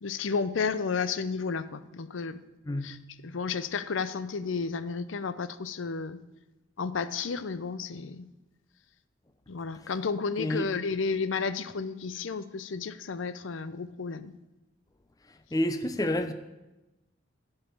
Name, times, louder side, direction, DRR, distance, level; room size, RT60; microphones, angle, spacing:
voice 1, 0.0-2.4 2.8-3.0 3.2-6.2 6.8-8.3 9.5-14.3, left 5 dB, 80° left, 14 dB, 0.6 m, -32 dB
voice 2, 2.7-3.0 10.4-10.7 15.5-16.3, left 1 dB, 20° left, 9 dB, 0.6 m, -29 dB
11.0 x 5.6 x 7.0 m, 1.0 s
head